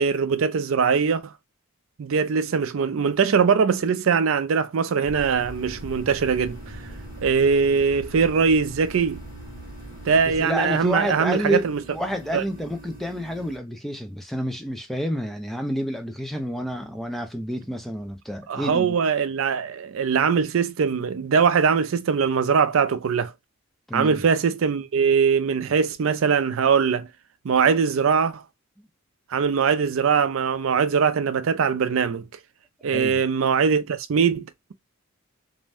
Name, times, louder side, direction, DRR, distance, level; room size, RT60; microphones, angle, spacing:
voice 1, 0.0-1.3 2.0-6.8 7.2-9.2 10.1-11.8 12.3-12.4 18.5-23.3 23.9-27.1 27.4-28.4 29.3-32.2 32.8-34.7, right 6 dB, 65° right, 0.4 m, -21 dB
sound 1, 5.0-10.4, right 1 dB, 80° left, 1.1 m, -41 dB
sound 2, 5.3-13.6, right 1 dB, 40° right, 0.8 m, -45 dB
voice 2, 10.3-19.0 23.9-24.2 28.8-28.9 32.9-33.2, equal, ahead, 0.4 m, -29 dB
2.6 x 2.1 x 3.3 m
head